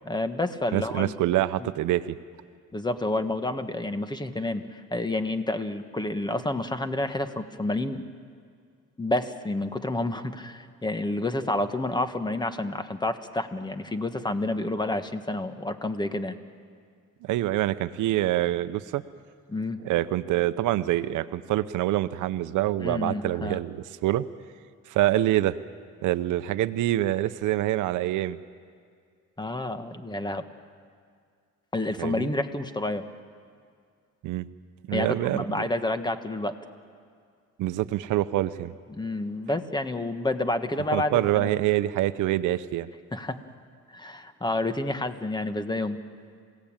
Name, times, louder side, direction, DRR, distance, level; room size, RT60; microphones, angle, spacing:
voice 1, 0.1-1.1 1.6-1.7 2.7-8.0 9.0-16.4 19.5-19.8 22.8-23.6 29.4-30.4 31.7-33.0 34.9-36.5 38.9-41.5 43.1-43.4 43.9-46.0, left 2 dB, 15° left, 9 dB, 1.5 m, -29 dB
voice 2, 0.7-2.2 17.2-19.0 19.8-24.3 24.9-25.6 26.0-28.4 32.0-32.3 34.2-34.5 34.9-35.4 37.6-38.7 40.9-42.9, right 14 dB, 90° right, 13 dB, 0.7 m, -26 dB
27.5 x 17.5 x 8.9 m, 2.1 s
cardioid pair, 90°, 30 cm